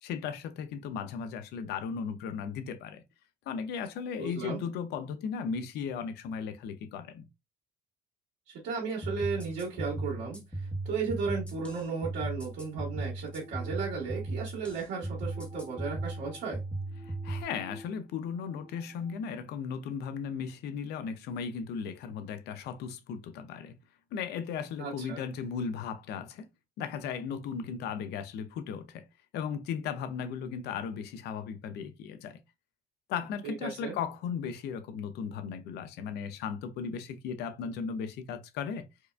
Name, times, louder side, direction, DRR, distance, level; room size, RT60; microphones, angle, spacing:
voice 1, 0.0-3.0 3.5-7.2 17.0-23.8 24.1-26.5 26.8-29.1 29.3-32.4 33.1-38.9, left 6 dB, 80° left, 0.6 m, -36 dB
voice 2, 4.2-4.6 8.5-16.6 24.8-25.2 33.4-34.0, right 5 dB, 80° right, 1.7 m, -35 dB
sound 1, 9.0-17.4, right 2 dB, 5° left, 1.1 m, -37 dB
sound 2, 12.4-19.1, right 1 dB, 35° right, 1.2 m, -53 dB
4.7 x 2.4 x 2.3 m
cardioid pair, 110°, 17 cm